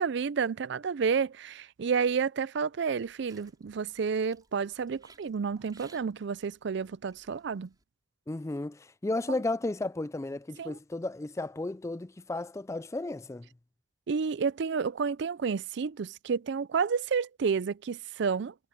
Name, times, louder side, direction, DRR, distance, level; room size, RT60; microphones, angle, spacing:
voice 1, 0.0-7.7 9.3-9.4 10.6-10.8 14.1-18.5, right 6 dB, 60° right, 0.4 m, -30 dB
sound 1, 2.8-7.8, right 4 dB, 20° right, 5.3 m, -62 dB
voice 2, 8.3-13.5, left 2 dB, 15° left, 0.4 m, -33 dB
head